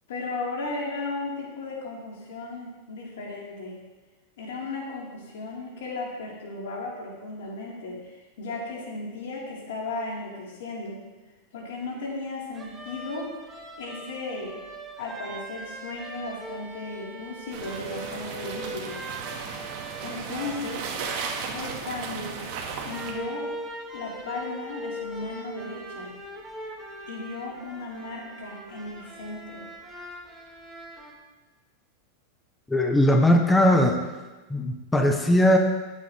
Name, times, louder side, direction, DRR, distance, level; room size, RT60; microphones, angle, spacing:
voice 1, 0.1-3.8 4.4-8.1 8.4-11.0 11.5-13.3 13.8-14.6 15.0-19.0 20.0-20.8 21.5-22.4 22.8-23.5 23.9-26.1 27.1-29.6, left 3 dB, 80° left, -4 dB, 4.0 m, -35 dB
sound 1, 12.5-31.1, right 1 dB, 10° right, 1.4 m, -41 dB
sound 2, 17.5-23.1, right 5 dB, 50° right, 1.7 m, -35 dB
voice 2, 32.7-34.0 34.5-35.6, left 1 dB, 5° left, 3 dB, 0.8 m, -19 dB
16.0 x 8.4 x 3.4 m, 1.2 s
supercardioid pair, 155°, 0 cm